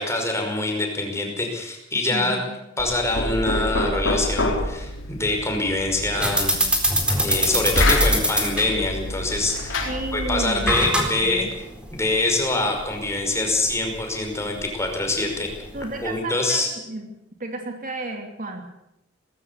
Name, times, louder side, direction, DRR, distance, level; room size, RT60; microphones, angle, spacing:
voice 1, 0.0-2.4 2.8-6.6 7.1-11.5 11.9-15.5 16.0-16.7, left 2 dB, 15° left, 2 dB, 5.4 m, -25 dB
voice 2, 2.1-2.6 9.9-11.5 15.7-17.1 17.4-18.6, right 2 dB, 45° right, 4 dB, 2.6 m, -32 dB
Knock, 2.8-10.7, left 1 dB, 75° left, 4.2 m, -27 dB
sound 1, 6.1-16.2, equal, 5° right, 4.1 m, -26 dB
20.0 x 16.5 x 8.4 m, 0.85 s
head